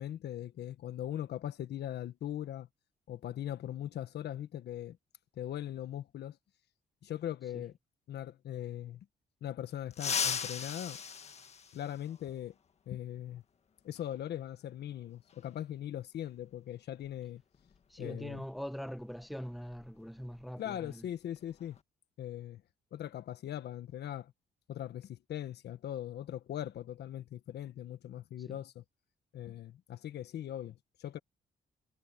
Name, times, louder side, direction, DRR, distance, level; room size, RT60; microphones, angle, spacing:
voice 1, 0.0-2.7 3.1-5.0 5.3-6.4 7.0-7.7 8.1-9.1 9.4-11.0 11.7-12.5 12.9-13.4 13.8-17.4 18.0-18.4 20.6-21.8 22.2-22.6 22.9-24.3 24.7-28.8 29.3-31.2, left 11 dB, 65° left, 1.4 m, -40 dB
sound 1, 9.9-12.3 14.0-14.1 15.3-15.4 17.0-17.2 17.5-17.8 18.2-20.4 20.7-20.9 21.4-21.8, left 6 dB, 35° left, 1.7 m, -38 dB
voice 2, 17.9-21.1 28.5-28.6, equal, ahead, 1.1 m, -42 dB
cardioid pair, 155°, 18 cm